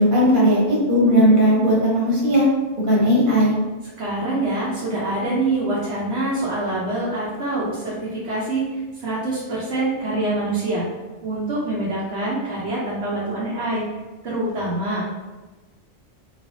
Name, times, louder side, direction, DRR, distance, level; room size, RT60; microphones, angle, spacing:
voice 1, 0.0-2.4 2.9-3.6, equal, 45° right, -5 dB, 1.3 m, -17 dB
voice 2, 3.8-10.9 11.2-13.9 14.2-15.0, right 2 dB, 70° right, -7 dB, 1.1 m, -25 dB
3.7 x 3.2 x 2.6 m, 1.2 s
omnidirectional pair, 1.2 m